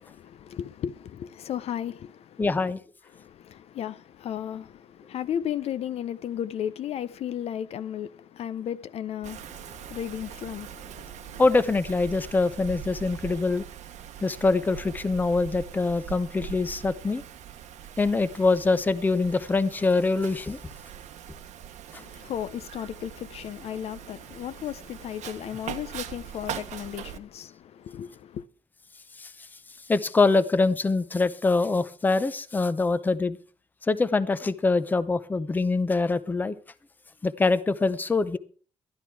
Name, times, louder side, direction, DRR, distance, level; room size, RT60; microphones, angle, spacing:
voice 1, 0.0-2.5 3.1-11.4 22.0-28.5, left 10 dB, 60° left, 0.5 m, -35 dB
voice 2, 2.4-2.8 11.4-13.6 14.2-17.2 18.0-20.6 29.2-29.3 29.9-33.4 33.9-36.6 37.2-38.4, left 3 dB, 15° left, 0.6 m, -24 dB
Wind, 9.2-27.2, right 9 dB, 85° right, 1.1 m, -42 dB
12.5 x 11.0 x 4.6 m
cardioid pair, 160°, 12 cm